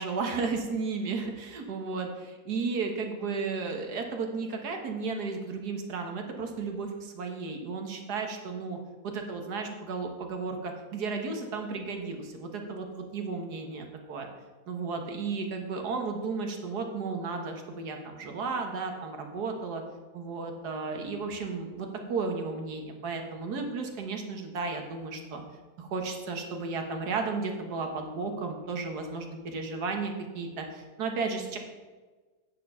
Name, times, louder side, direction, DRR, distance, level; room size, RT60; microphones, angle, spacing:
voice 1, 0.0-8.8 9.0-14.3 14.7-19.8 20.1-25.4 25.8-31.6, right 4 dB, 85° right, 3 dB, 1.8 m, -34 dB
9.1 x 6.9 x 5.5 m, 1.3 s
omnidirectional pair, 1.7 m